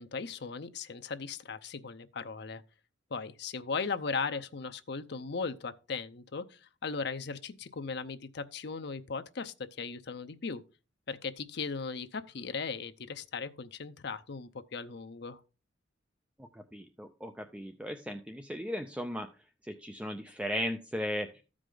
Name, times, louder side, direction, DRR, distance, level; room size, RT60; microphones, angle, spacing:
voice 1, 0.0-2.6 3.1-10.6 11.1-15.4, left 4 dB, 60° left, 0.6 m, -37 dB
voice 2, 16.4-19.3 19.6-21.4, equal, 5° right, 0.5 m, -37 dB
14.0 x 4.9 x 3.8 m
head